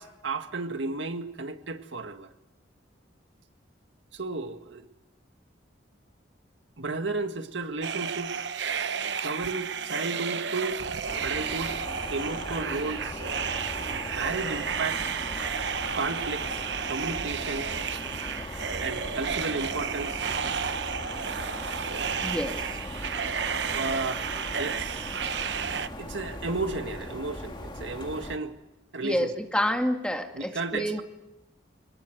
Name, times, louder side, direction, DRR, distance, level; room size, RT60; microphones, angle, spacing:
voice 1, 0.0-2.3 4.1-4.8 6.8-8.3 9.2-10.8 11.2-11.8 12.1-13.2 13.7-15.0 15.9-17.7 18.8-20.3 23.7-25.2 26.0-28.6 28.9-29.3 30.3-31.0, right 3 dB, 80° right, 7 dB, 1.8 m, -33 dB
sound 1, 7.8-25.9, right 7 dB, 65° right, 0.9 m, -32 dB
sound 2, 11.1-28.4, left 1 dB, 25° left, 2.5 m, -39 dB
voice 2, 22.2-22.7 29.0-31.0, equal, 5° left, 4 dB, 1.9 m, -28 dB
24.0 x 20.5 x 7.9 m, 0.97 s
head